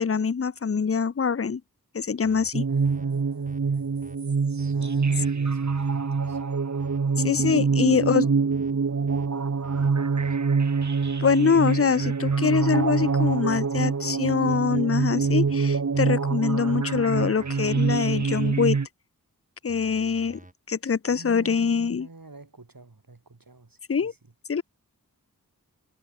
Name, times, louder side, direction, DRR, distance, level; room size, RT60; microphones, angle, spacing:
voice 1, 0.0-1.6 1.9-2.6 7.2-8.3 11.2-18.8 19.6-20.4 20.7-22.1 23.9-24.1 24.5-24.6, left 6 dB, 40° left, 0.6 m, -24 dB
sound 1, 2.2-2.5 2.8-3.1 3.5-3.6 4.0-4.2 4.6-4.7 5.1-5.3 5.7-5.9 6.2-6.4 6.8-7.0 7.4-7.6 7.9-8.1 8.5-8.7 9.1-9.3 9.6-9.9 10.2-10.4 10.8-11.6 12.0-13.8 14.2-16.1 16.7-18.5 19.7-20.5, right 1 dB, 20° right, 2.9 m, -49 dB
sound 2, 2.5-18.9, right 5 dB, 55° right, 0.9 m, -25 dB
voice 2, 2.7-4.1 4.7-6.4 7.5-9.1 9.7-10.3 21.0-24.3, right 3 dB, 75° right, 6.0 m, -47 dB
wide cardioid pair, 50°, 35 cm